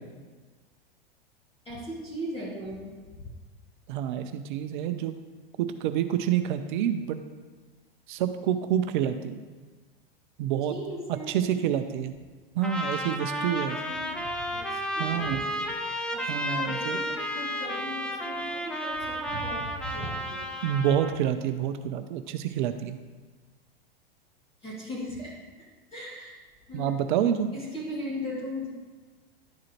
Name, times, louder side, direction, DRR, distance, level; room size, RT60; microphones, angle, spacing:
voice 1, 1.6-3.3 10.7-11.8 13.9-15.7 16.1-20.4 24.6-25.4 25.9-26.4 26.7-26.9 27.5-28.7, equal, 20° left, -6 dB, 2.5 m, -38 dB
voice 2, 3.9-5.1 5.6-7.2 8.1-9.4 10.4-10.7 11.3-12.1 12.6-13.8 15.0-15.4 16.3-17.0 20.6-23.0 26.7-27.5, right 9 dB, 55° right, 9 dB, 0.5 m, -28 dB
Trumpet, 12.6-21.2, equal, 5° left, 0.7 m, -32 dB
11.5 x 4.8 x 3.0 m, 1.4 s
hypercardioid pair, 100°, 30 cm